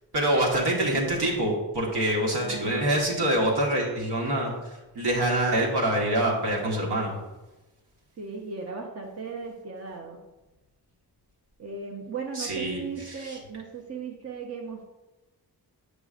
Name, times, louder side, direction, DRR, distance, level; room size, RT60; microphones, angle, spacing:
voice 1, 0.1-4.5 4.9-7.2 12.4-13.4, right 1 dB, 70° right, -2 dB, 1.5 m, -25 dB
voice 2, 2.4-3.0 8.2-10.2 11.6-14.9, right 5 dB, 40° right, 1 dB, 0.8 m, -37 dB
7.7 x 5.1 x 2.5 m, 1.1 s
cardioid pair, 65°, 40 cm